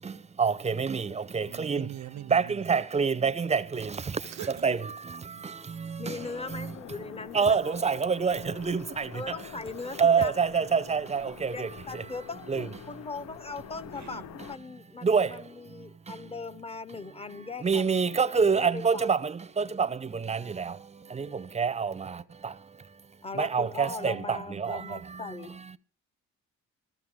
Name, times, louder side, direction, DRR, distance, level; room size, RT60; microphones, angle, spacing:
voice 1, 0.0-1.9 2.3-6.8 7.3-9.4 9.9-12.1 12.5-12.8 15.0-16.4 17.3-25.8, right 5 dB, 20° right, 0.6 m, -28 dB
voice 2, 1.4-2.7 4.3-4.7 5.3-5.5 13.9-14.3, right 12 dB, 65° right, 0.6 m, -42 dB
voice 3, 6.0-7.8 9.1-10.4 11.5-18.0 18.5-19.1 23.2-25.6, left 4 dB, 20° left, 0.8 m, -40 dB
sound 1, 6.2-14.6, left 11 dB, 65° left, 0.5 m, -47 dB
15.0 x 14.5 x 3.6 m
cardioid pair, 90°, 30 cm